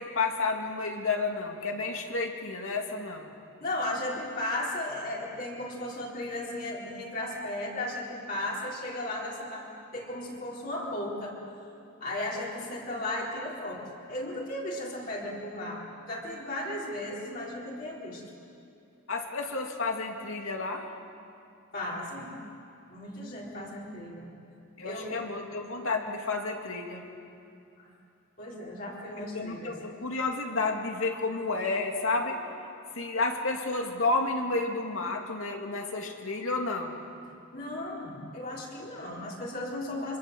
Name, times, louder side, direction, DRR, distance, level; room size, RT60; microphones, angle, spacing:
voice 1, 0.0-3.3 19.1-20.9 24.8-27.1 29.2-32.4 32.9-37.0, left 3 dB, 75° left, 2 dB, 2.7 m, -31 dB
voice 2, 3.6-11.4 12.0-18.2 21.7-22.3 22.9-24.3 24.8-25.3 27.8-27.9 28.4-29.8 37.5-40.2, left 1 dB, 40° left, -5 dB, 4.1 m, -35 dB
26.0 x 25.0 x 7.9 m, 2.5 s
head